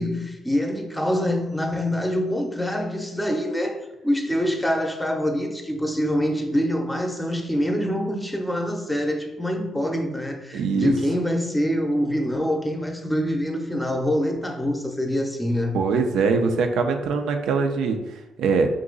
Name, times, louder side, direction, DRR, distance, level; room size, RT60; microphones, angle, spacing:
voice 1, 0.0-15.8, equal, 5° left, 3 dB, 0.7 m, -25 dB
voice 2, 10.5-10.9 15.7-18.7, right 4 dB, 80° right, 6 dB, 0.5 m, -22 dB
3.8 x 3.0 x 3.9 m, 1.0 s
cardioid pair, 90°, 0 cm